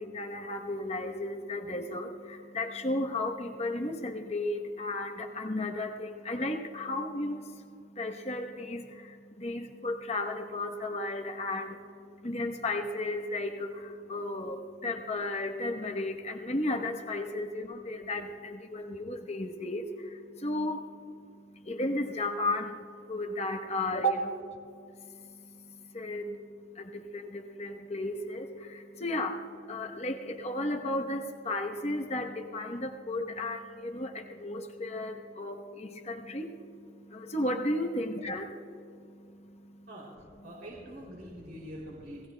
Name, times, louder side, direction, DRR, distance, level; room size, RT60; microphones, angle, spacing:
voice 1, 0.0-39.9, left 1 dB, 35° left, 3 dB, 0.9 m, -34 dB
voice 2, 40.4-42.3, equal, 50° right, -4 dB, 2.9 m, -44 dB
29.0 x 18.0 x 2.2 m, 2.5 s
head